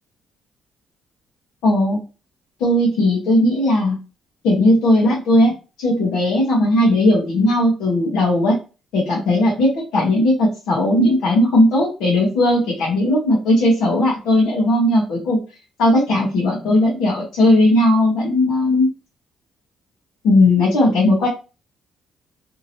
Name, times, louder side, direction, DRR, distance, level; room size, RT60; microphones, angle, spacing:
voice 1, 1.6-2.0 2.6-4.0 4.4-8.6 8.9-15.4 15.8-18.9 20.2-21.3, left 1 dB, 90° left, -4 dB, 1.1 m, -17 dB
2.8 x 2.8 x 2.7 m, 0.32 s
cardioid pair, 90°, 0 cm